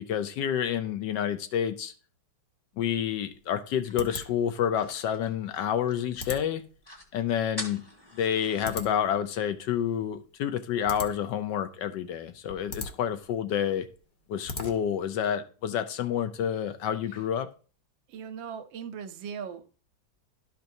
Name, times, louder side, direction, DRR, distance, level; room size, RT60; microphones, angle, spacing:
voice 1, 0.0-1.9 2.8-6.6 7.1-7.8 8.1-13.9 14.3-17.5, left 9 dB, 75° left, 9 dB, 1.2 m, -29 dB
sound 1, 2.9-15.1, left 3 dB, 50° left, 0.6 m, -43 dB
sound 2, 3.8-6.2 6.5-6.6 6.8-7.1 7.6-8.9, left 1 dB, 15° left, 0.9 m, -44 dB
voice 2, 18.1-19.7, right 7 dB, 80° right, 9 dB, 1.4 m, -39 dB
12.0 x 5.2 x 2.6 m, 0.37 s
omnidirectional pair, 2.1 m